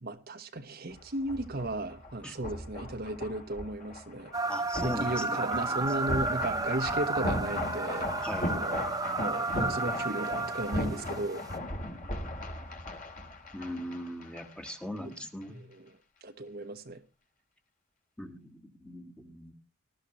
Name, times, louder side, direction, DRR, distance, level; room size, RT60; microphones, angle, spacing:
voice 1, 0.0-4.3 4.8-8.1 8.5-8.9 9.2-11.4 15.5-17.0, right 2 dB, 45° right, 7 dB, 0.9 m, -35 dB
sound 1, 0.9-14.7 15.0-15.1, left 1 dB, 40° left, 2.4 m, -38 dB
sound 2, 4.3-11.6, right 3 dB, 20° right, 0.7 m, -32 dB
voice 2, 4.5-5.8 8.2-8.5 13.5-15.6 18.2-19.5, equal, 5° left, 6 dB, 1.3 m, -40 dB
19.5 x 12.0 x 3.0 m, 0.29 s
head